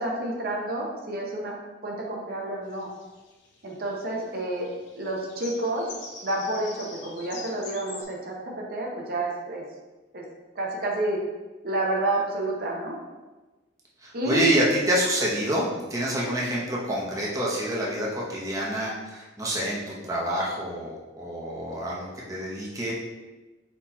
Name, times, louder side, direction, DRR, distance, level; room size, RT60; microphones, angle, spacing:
voice 1, 0.0-1.5 1.8-2.9 3.6-4.7 5.0-5.9 6.2-9.6 10.1-10.2 10.6-11.2 11.6-12.9 14.1-14.4, right 1 dB, 55° right, -1 dB, 0.7 m, -29 dB
sound 1, 2.7-8.0, left 4 dB, 85° left, 0.7 m, -44 dB
voice 2, 14.0-22.9, right 1 dB, 20° right, -5 dB, 0.8 m, -27 dB
4.3 x 2.8 x 4.1 m, 1.2 s
head